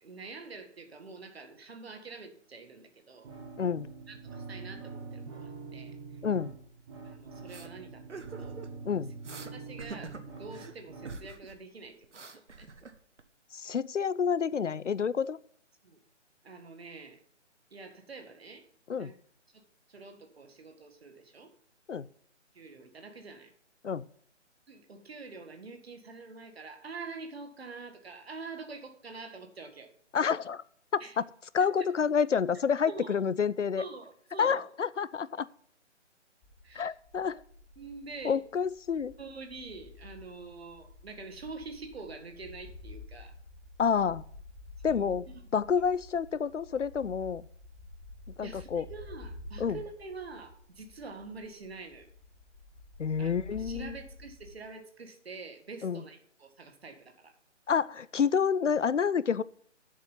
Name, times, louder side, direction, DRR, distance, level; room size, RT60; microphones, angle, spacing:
voice 1, 0.0-3.3 4.1-6.0 7.0-8.6 8.9-9.0 9.5-12.7 15.8-16.0 16.4-17.2 17.7-18.7 19.0-19.2 19.5-21.5 22.5-23.5 24.7-29.9 31.0-31.2 31.6-31.9 32.9-33.2 33.8-34.6 36.6-36.9 37.8-38.4 39.2-43.4 44.9-45.5 48.4-52.1 53.2-57.3, right 4 dB, 55° right, 6 dB, 1.9 m, -46 dB
sound 1, 3.2-11.2, right 4 dB, 20° right, 1.6 m, -45 dB
voice 2, 3.6-3.9 6.2-6.5 8.9-9.1 13.5-15.4 18.9-19.1 21.9-22.1 23.8-24.1 30.1-30.6 30.9-31.2 31.5-33.8 34.4-35.5 36.7-37.4 38.2-39.1 43.8-44.2 44.8-45.2 45.5-47.5 48.4-48.8 49.6-49.8 53.0-54.0 55.8-56.0 57.7-59.4, left 6 dB, 80° left, 19 dB, 0.6 m, -28 dB
sound 2, 7.5-7.7 8.1-8.8 9.2-9.5 9.8-10.7 11.1-11.6 11.8-13.2, right 3 dB, 70° right, 1.3 m, -45 dB
sound 3, 36.4-54.7, left 3 dB, 10° left, 3.6 m, -50 dB
8.4 x 7.3 x 5.6 m, 0.63 s
figure-of-eight pair, 145°, 37 cm